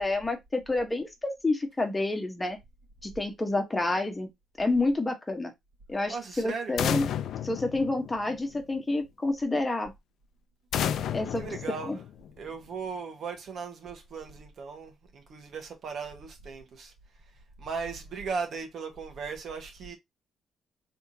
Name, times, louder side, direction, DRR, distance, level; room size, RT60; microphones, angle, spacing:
voice 1, 0.0-2.6 3.0-4.3 4.6-5.5 5.9-7.1 7.4-9.9 11.1-11.4 11.9-12.0, left 2 dB, 20° left, 1.2 m, -29 dB
voice 2, 6.1-6.8 11.3-12.0 12.4-16.9 17.6-20.0, right 5 dB, 60° right, 1.5 m, -37 dB
sound 1, 6.8-8.6 10.7-12.5, left 9 dB, 70° left, 0.5 m, -32 dB
3.6 x 3.5 x 2.8 m
cardioid pair, 90°, 0 cm